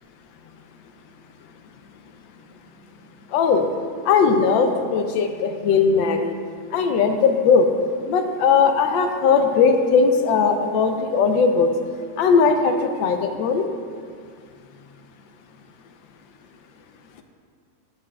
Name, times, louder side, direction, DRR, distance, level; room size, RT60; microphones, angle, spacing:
voice 1, 3.3-3.6 4.1-6.3 6.7-7.7 8.1-11.7 12.2-12.7 13.0-13.6, left 5 dB, 80° left, 6 dB, 1.3 m, -18 dB
13.5 x 5.9 x 2.3 m, 2.1 s
omnidirectional pair, 2.1 m